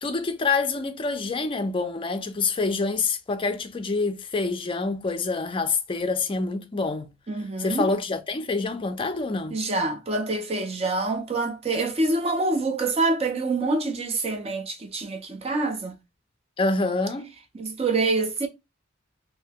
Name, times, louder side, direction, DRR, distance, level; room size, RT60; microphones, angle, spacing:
voice 1, 0.0-7.1 7.6-9.6 16.6-17.3, left 3 dB, 25° left, 0.4 m, -26 dB
voice 2, 7.3-7.9 9.5-16.0 17.5-18.5, right 3 dB, 30° right, 0.5 m, -26 dB
2.7 x 2.1 x 3.4 m
head